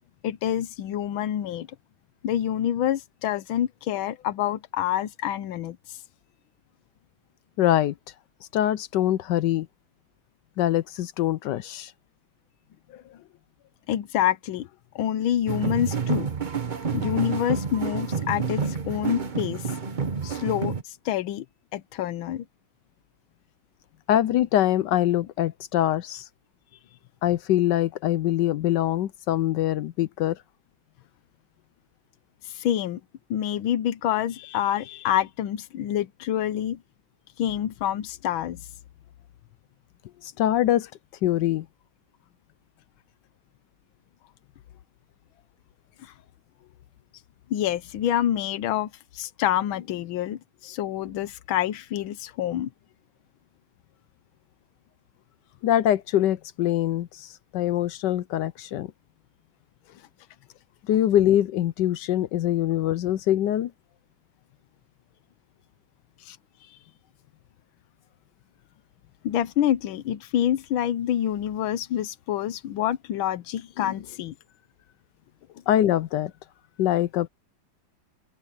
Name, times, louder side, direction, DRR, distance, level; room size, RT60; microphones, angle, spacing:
voice 1, 0.2-1.7 2.2-6.0 12.9-13.2 13.9-14.7 14.9-16.3 16.9-19.7 20.2-21.4 21.7-22.4 32.4-33.0 33.3-36.8 37.4-38.6 46.0-46.1 47.5-52.7 66.2-66.4 69.2-74.3, left 11 dB, 85° left, 1.6 m, -27 dB
voice 2, 7.6-7.9 8.5-9.7 10.6-11.9 24.1-26.2 27.2-30.4 40.2-40.9 41.2-41.7 55.6-58.9 60.9-63.7 75.7-76.3 76.8-77.3, left 12 dB, 70° left, 1.1 m, -23 dB
sound 1, 15.5-20.8, right 5 dB, 30° right, 1.0 m, -29 dB
omnidirectional pair, 2.1 m